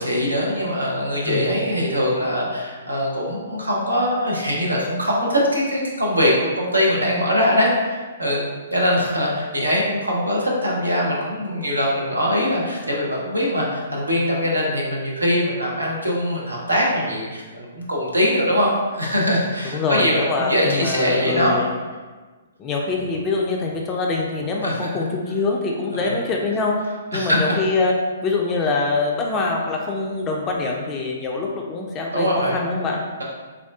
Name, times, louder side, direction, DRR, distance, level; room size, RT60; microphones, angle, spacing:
voice 1, 0.0-8.4 8.7-21.7 24.6-24.9 26.0-26.1 27.1-27.5 32.1-32.6, equal, 85° right, -3 dB, 0.7 m, -22 dB
voice 2, 19.6-21.6 22.6-26.8 27.1-27.9 28.2-33.0, left 3 dB, 25° left, -1 dB, 0.3 m, -24 dB
3.5 x 2.3 x 2.3 m, 1.4 s
figure-of-eight pair, 125°, 0 cm